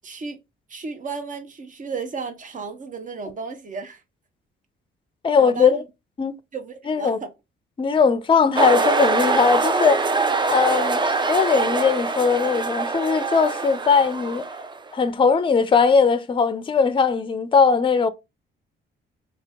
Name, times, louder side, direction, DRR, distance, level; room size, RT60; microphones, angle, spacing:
voice 1, 0.0-0.4 0.7-4.0 5.3-5.8 6.5-7.3, right 4 dB, 40° right, 0.9 m, -34 dB
voice 2, 5.2-5.8 6.2-6.3 6.9-7.2 7.8-10.1 10.5-11.0 11.3-14.4 14.9-18.1, left 5 dB, 25° left, 0.5 m, -19 dB
sound 1, 8.6-14.9, right 4 dB, 25° right, 0.5 m, -23 dB
2.9 x 2.8 x 3.4 m
cardioid pair, 90°, 20 cm